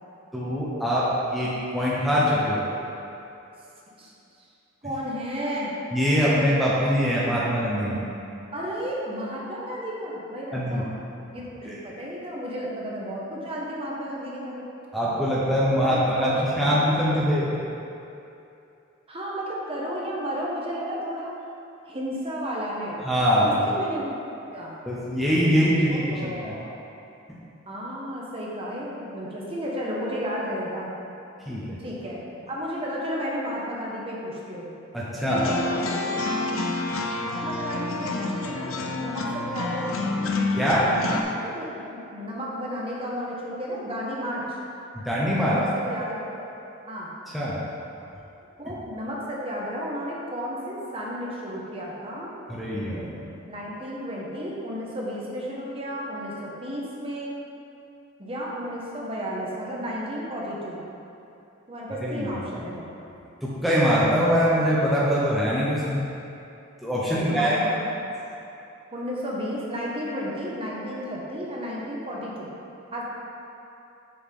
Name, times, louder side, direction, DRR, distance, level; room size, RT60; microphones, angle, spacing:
voice 1, 0.3-2.6 5.9-8.0 10.5-10.8 14.9-17.5 23.0-23.6 24.9-26.5 31.5-31.8 34.9-35.5 40.5-40.9 44.9-45.6 47.3-47.6 52.5-53.1 62.0-62.3 62.6-62.7 63.4-66.1 66.8-67.6, equal, ahead, -8 dB, 0.9 m, -23 dB
voice 2, 4.8-5.7 8.5-10.9 11.3-14.7 15.8-16.8 19.1-21.3 21.9-23.0 23.4-24.2 24.5-24.8 25.9-26.7 27.7-30.9 31.8-34.7 35.2-36.0 37.2-40.0 41.1-44.6 45.4-46.4 46.9-47.1 48.6-52.3 53.5-57.4 58.2-60.8 61.7-62.8 67.1-67.8 68.9-72.5 72.9-73.0, equal, 25° right, -4 dB, 1.1 m, -33 dB
sound 1, 35.3-41.2, left 2 dB, 80° left, 0.6 m, -28 dB
7.1 x 6.9 x 3.8 m, 2.8 s
head